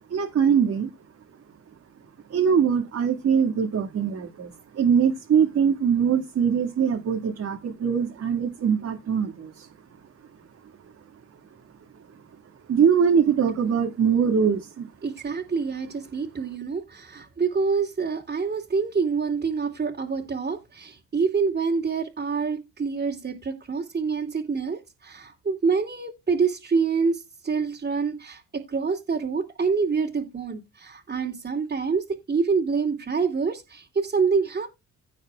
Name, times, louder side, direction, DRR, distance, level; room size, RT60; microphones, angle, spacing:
voice 1, 0.1-0.9 2.3-9.7 12.7-14.9, right 7 dB, 55° right, 2.2 m, -22 dB
voice 2, 15.0-34.7, right 5 dB, 35° right, 2.8 m, -26 dB
17.0 x 6.4 x 2.4 m
cardioid pair, 90°, 30 cm